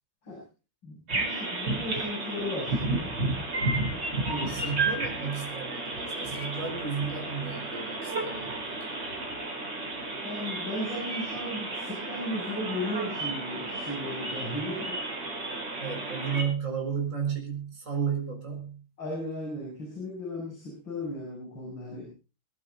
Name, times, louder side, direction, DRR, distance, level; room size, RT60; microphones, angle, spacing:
voice 1, 0.8-3.0 4.3-4.5 10.2-15.0 19.0-22.1, left 1 dB, 60° left, -4 dB, 7.8 m, -36 dB
sound 1, 1.1-16.4, right 2 dB, 55° right, 5.0 m, -32 dB
voice 2, 4.5-9.0 15.8-18.9, right 6 dB, 35° right, 1 dB, 4.6 m, -33 dB
23.5 x 11.5 x 3.9 m, 0.32 s
omnidirectional pair, 2.3 m